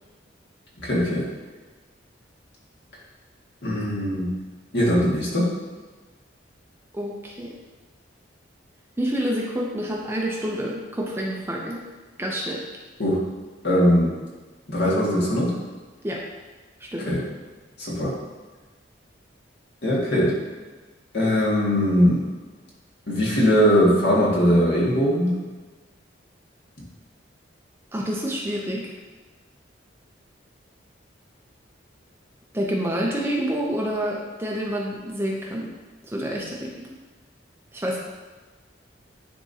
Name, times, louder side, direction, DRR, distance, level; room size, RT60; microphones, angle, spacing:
voice 1, 0.8-1.2 3.6-4.3 4.7-5.5 13.0-13.2 13.6-14.1 14.7-15.5 17.0-17.2 17.8-18.1 19.8-20.3 21.1-22.2 23.1-25.4, equal, 60° left, -6 dB, 1.9 m, -20 dB
voice 2, 6.9-7.5 9.0-11.8 12.2-12.6 16.0-16.2 16.8-17.1 27.9-28.9 32.5-35.7 36.1-36.9 37.7-38.0, equal, 10° right, -2 dB, 0.6 m, -28 dB
10.0 x 3.6 x 2.8 m, 1.3 s
head